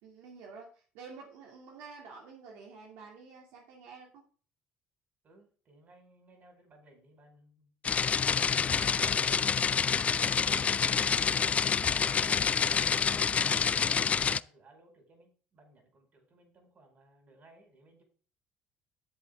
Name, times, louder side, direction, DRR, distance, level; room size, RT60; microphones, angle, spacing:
voice 1, 0.0-4.2, right 5 dB, 85° right, 0 dB, 2.5 m, -49 dB
voice 2, 5.2-8.1 8.5-11.7 12.0-18.0, right 2 dB, 40° right, 4 dB, 5.0 m, -60 dB
sound 1, 7.8-14.4, left 6 dB, 35° left, 0.4 m, -27 dB
10.5 x 7.9 x 3.6 m, 0.41 s
cardioid pair, 95°, 4 cm